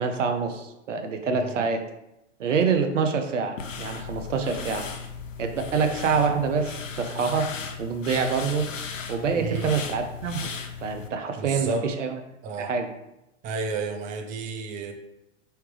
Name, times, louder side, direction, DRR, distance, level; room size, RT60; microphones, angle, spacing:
voice 1, 0.0-1.8 2.4-4.8 5.4-7.5 7.8-8.7 9.1-10.5 10.8-12.2 12.6-12.9, right 5 dB, 75° right, 6 dB, 0.7 m, -26 dB
voice 2, 1.3-1.7 9.4-9.7 11.4-11.9 12.4-12.7 13.4-14.9, right 4 dB, 20° right, 4 dB, 0.4 m, -32 dB
sound 1, 3.6-11.1, left 6 dB, 85° left, 0.6 m, -36 dB
4.6 x 3.3 x 3.2 m, 0.89 s
hypercardioid pair, 105°, 37 cm